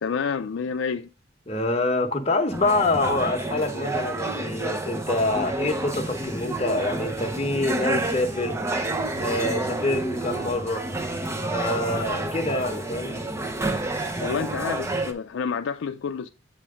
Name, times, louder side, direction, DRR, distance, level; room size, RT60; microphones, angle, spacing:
voice 1, 0.0-1.1 14.2-16.3, left 6 dB, 80° left, 0.4 m, -29 dB
voice 2, 1.5-8.7 9.2-11.0 11.4-13.2, left 2 dB, 30° left, 1.0 m, -26 dB
sound 1, 2.5-15.1, right 2 dB, 15° right, 0.6 m, -29 dB
7.7 x 3.1 x 4.9 m
head